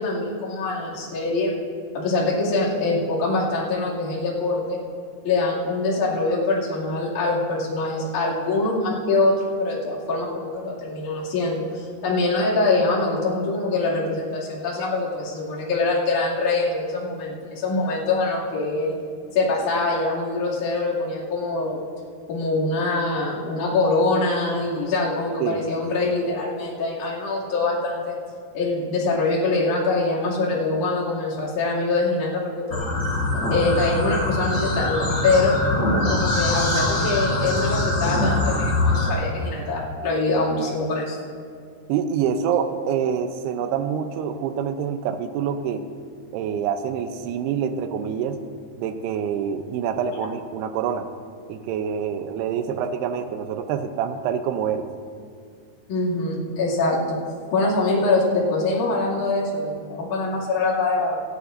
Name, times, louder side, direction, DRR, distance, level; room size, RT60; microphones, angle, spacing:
voice 1, 0.0-1.6 1.9-4.8 5.2-19.0 19.3-21.8 22.3-28.2 28.5-32.8 33.5-35.6 36.1-41.2 55.9-57.2 57.5-61.2, left 3 dB, 50° left, -7 dB, 3.7 m, -24 dB
sound 1, 32.7-39.1, left 2 dB, 85° left, 1.0 m, -23 dB
voice 2, 35.9-36.3 41.9-45.9 46.3-48.4 48.8-51.1 51.5-54.9, right 8 dB, 80° right, 9 dB, 2.7 m, -26 dB
27.0 x 9.6 x 2.6 m, 2.2 s
omnidirectional pair, 4.7 m